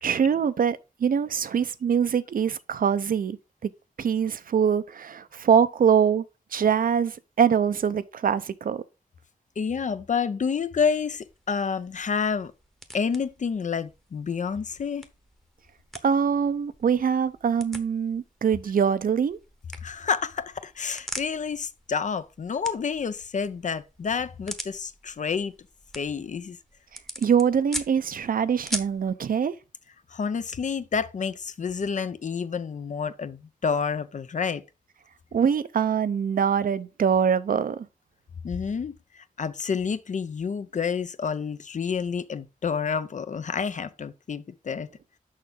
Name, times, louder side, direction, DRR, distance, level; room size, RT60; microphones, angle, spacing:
voice 1, 0.0-3.4 3.6-3.7 4.0-6.3 6.5-8.8 16.0-19.4 27.2-29.5 35.3-37.9, right 7 dB, 80° right, 0.6 m, -23 dB
voice 2, 9.6-12.5 12.9-15.1 19.8-25.5 25.9-26.6 30.1-34.6 38.4-44.9, left 6 dB, 60° left, 0.6 m, -29 dB
sound 1, 10.9-29.1, equal, ahead, 0.9 m, -43 dB
6.5 x 5.7 x 3.7 m
wide cardioid pair, 115°, 14 cm